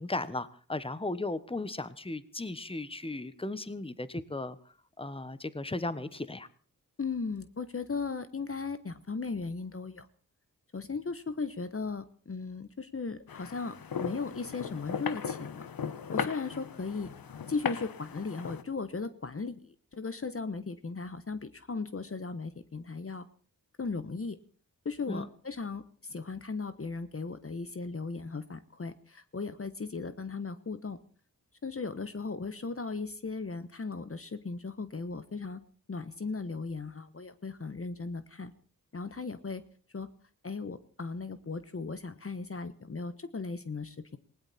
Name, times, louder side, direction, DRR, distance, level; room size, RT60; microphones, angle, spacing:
voice 1, 0.0-4.6 5.0-6.5 25.1-25.3, left 2 dB, 15° left, 14 dB, 1.3 m, -36 dB
voice 2, 7.0-10.1 10.7-13.7 14.0-15.7 16.1-17.1 17.5-23.3 23.8-24.4 24.8-31.0 31.6-35.6 35.9-38.5 38.9-39.6 39.9-40.1 40.4-44.2, left 4 dB, 40° left, 12 dB, 1.2 m, -37 dB
sound 1, 13.3-18.6, left 7 dB, 80° left, 1.2 m, -37 dB
19.5 x 17.5 x 4.3 m, 0.43 s
cardioid pair, 45°, 35 cm